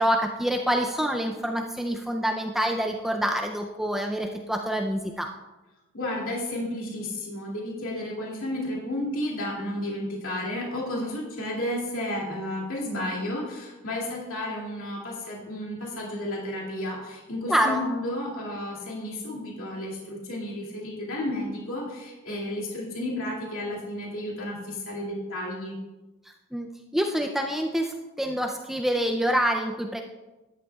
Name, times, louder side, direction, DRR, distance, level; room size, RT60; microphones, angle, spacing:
voice 1, 0.0-5.3 17.5-17.8 26.5-30.0, equal, ahead, 2 dB, 0.4 m, -26 dB
voice 2, 5.9-25.8, left 1 dB, 70° left, -4 dB, 2.4 m, -32 dB
12.5 x 10.0 x 2.3 m, 1.1 s
head